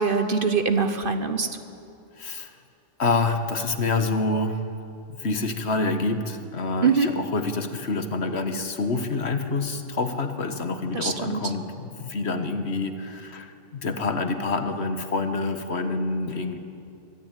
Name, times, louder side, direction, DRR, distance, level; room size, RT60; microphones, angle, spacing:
voice 1, 0.0-1.5 6.8-7.1 10.9-11.5, right 5 dB, 50° right, 8 dB, 1.2 m, -23 dB
voice 2, 2.2-2.5 3.0-4.6 5.1-16.6, left 3 dB, 65° left, 7 dB, 1.6 m, -27 dB
23.5 x 13.5 x 9.1 m, 2.6 s
omnidirectional pair, 1.2 m